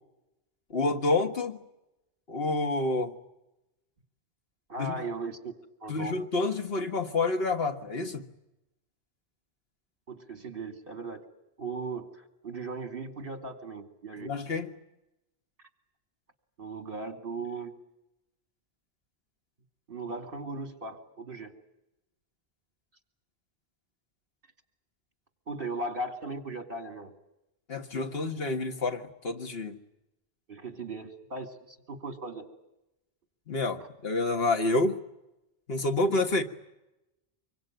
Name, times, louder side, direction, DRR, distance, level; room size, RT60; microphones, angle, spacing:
voice 1, 0.7-1.6 2.3-3.2 4.8-5.0 5.9-8.3 14.2-14.7 27.7-29.8 33.5-35.0 35.7-36.4, left 2 dB, 70° left, 6 dB, 1.8 m, -28 dB
voice 2, 4.7-5.5 5.8-6.1 10.1-11.2 11.6-14.3 16.6-17.7 19.9-21.5 25.5-27.1 30.5-32.5, right 3 dB, 60° right, 7 dB, 2.8 m, -37 dB
25.5 x 23.0 x 9.1 m, 0.93 s
omnidirectional pair, 1.1 m